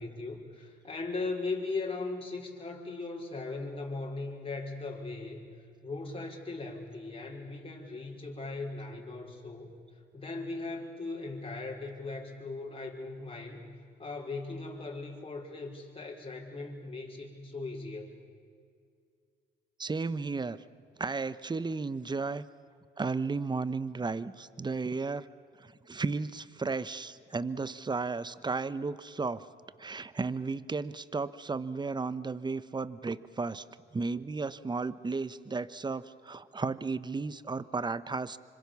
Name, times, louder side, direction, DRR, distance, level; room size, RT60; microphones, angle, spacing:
voice 1, 0.0-5.5 5.8-9.8 10.1-13.7 14.0-18.2, left 3 dB, 25° left, 0 dB, 5.3 m, -38 dB
voice 2, 19.8-20.6 21.0-22.4 23.0-25.3 25.6-29.4 29.8-33.6 33.9-38.4, right 4 dB, 20° right, 16 dB, 1.0 m, -34 dB
27.0 x 25.5 x 7.2 m, 2.2 s
cardioid pair, 90°, 20 cm